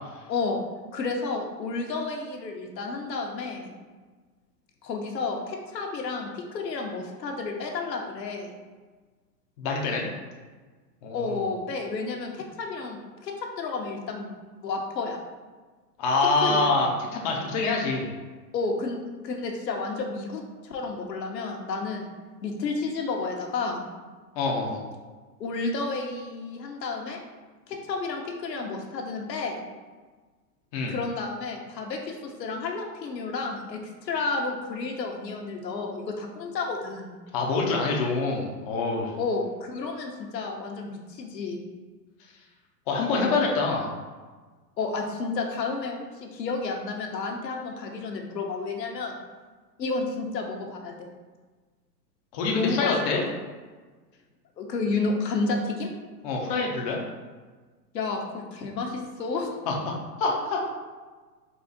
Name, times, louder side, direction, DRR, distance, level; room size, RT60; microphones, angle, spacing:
voice 1, 0.3-0.6 0.9-3.8 4.8-8.5 11.1-14.3 14.6-15.2 16.4-16.8 18.5-19.0 19.2-22.1 22.4-23.9 25.4-27.2 27.7-29.6 30.9-37.2 39.2-41.6 43.4-43.6 44.8-49.2 49.8-51.1 52.5-53.2 54.6-55.9 57.9-59.5, left 3 dB, 85° left, 2 dB, 0.9 m, -31 dB
voice 2, 9.6-10.1 11.0-11.4 16.0-18.1 24.4-24.8 30.7-30.9 37.3-39.1 42.9-43.9 52.3-53.2 56.2-57.0 59.7-59.9 60.2-60.6, left 3 dB, 25° left, -1 dB, 0.4 m, -25 dB
4.1 x 2.5 x 3.8 m, 1.4 s
hypercardioid pair, 125°, 49 cm